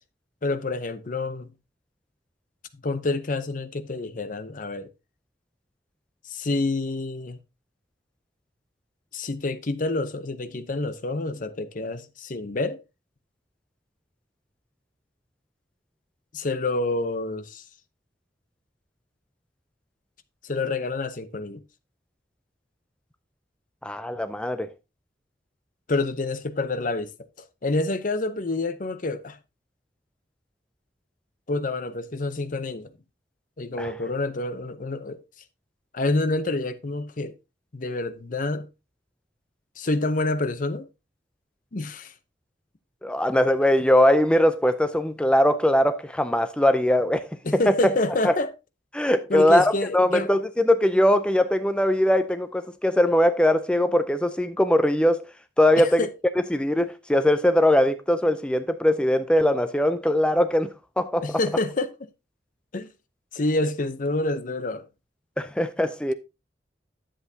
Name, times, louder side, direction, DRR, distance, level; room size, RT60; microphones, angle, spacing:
voice 1, 0.4-1.5 2.8-4.9 6.2-7.4 9.1-12.8 16.3-17.6 20.4-21.6 25.9-27.1 27.6-29.4 31.5-32.9 33.6-35.2 35.9-37.3 37.7-38.7 39.8-40.9 41.7-42.1 47.4-48.5 49.3-50.3 55.8-56.1 61.2-61.9 62.7-62.9 63.3-64.9, left 2 dB, 50° left, 0.7 m, -27 dB
voice 2, 23.8-24.7 33.8-33.9 43.0-47.7 48.2-48.3 48.9-55.3 55.6-56.0 56.5-61.4 65.4-66.1, left 1 dB, 5° left, 0.4 m, -21 dB
10.5 x 7.7 x 2.7 m
head